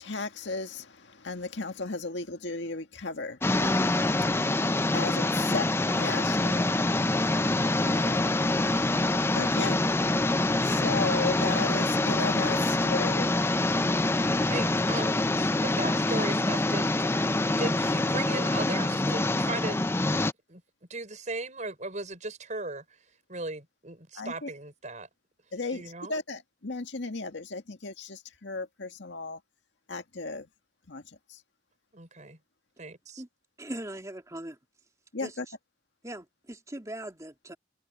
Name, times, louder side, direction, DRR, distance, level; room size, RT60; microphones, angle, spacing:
voice 1, 0.0-3.9 4.9-5.7 5.9-6.7 7.8-8.7 9.3-9.8 10.6-13.3 24.2-24.5 25.5-29.4 29.9-30.5 30.9-31.0 31.3-31.4 35.1-35.5, left 3 dB, 90° left, 1.9 m, -35 dB
sound 1, 3.4-20.3, left 2 dB, 15° left, 0.5 m, -25 dB
voice 2, 14.3-20.2 20.5-20.6 20.9-23.0 23.3-25.1 25.7-26.1 31.9-32.4 32.8-33.2, right 3 dB, 45° right, 6.2 m, -37 dB
voice 3, 33.6-34.6 35.2-35.6 36.0-37.6, right 1 dB, 20° right, 3.0 m, -40 dB
head